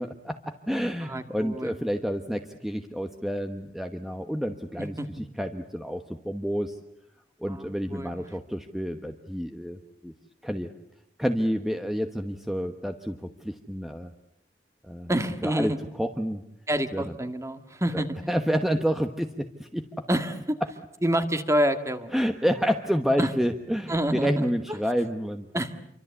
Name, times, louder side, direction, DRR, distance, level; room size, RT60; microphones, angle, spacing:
voice 1, 0.0-6.7 7.4-10.1 10.4-10.7 11.2-13.2 13.4-14.1 14.9-15.1 15.4-15.7 16.0-16.4 16.9-17.2 17.9-18.0 18.3-20.0 22.1-25.5, equal, ahead, 6 dB, 1.2 m, -29 dB
voice 2, 1.0-1.8 4.8-5.1 7.5-8.2 15.1-15.8 16.7-18.1 20.1-20.6 21.0-22.1 23.2-23.3 23.9-24.5 25.5-25.8, equal, 15° right, 8 dB, 1.8 m, -27 dB
28.0 x 24.5 x 8.3 m, 0.77 s
head